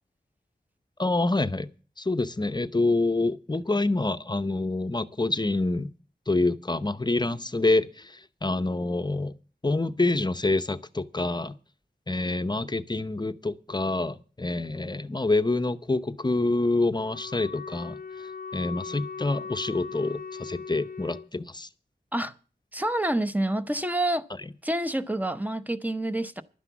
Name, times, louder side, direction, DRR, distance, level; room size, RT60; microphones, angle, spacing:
voice 1, 1.0-1.7 2.0-5.9 6.3-9.3 9.6-11.6 12.1-18.0 18.5-21.7, left 2 dB, 25° left, 0.7 m, -27 dB
Wind instrument woodwind instrument, 16.9-21.3, left 5 dB, 55° left, 0.7 m, -39 dB
voice 2, 22.7-24.3 24.6-26.4, right 1 dB, 10° right, 0.8 m, -27 dB
11.5 x 9.9 x 7.1 m
wide cardioid pair, 90°, 17 cm